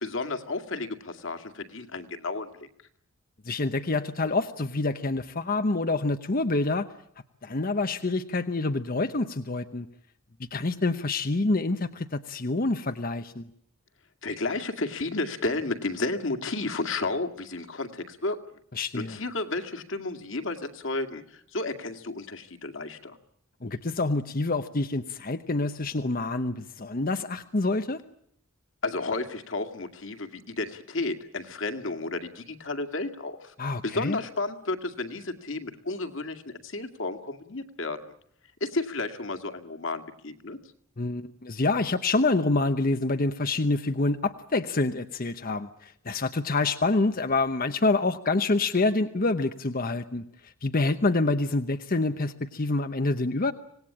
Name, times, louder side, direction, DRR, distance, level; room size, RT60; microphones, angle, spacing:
voice 1, 0.0-2.5 14.2-18.4 18.9-23.2 28.8-33.5 33.8-38.1 38.6-40.6, left 2 dB, 60° left, 5 dB, 2.2 m, -32 dB
voice 2, 3.4-6.9 7.4-9.9 10.5-13.5 18.7-19.2 23.6-28.0 33.6-34.2 41.0-53.5, left 2 dB, 40° left, 9 dB, 0.9 m, -27 dB
26.0 x 19.0 x 8.6 m, 0.70 s
head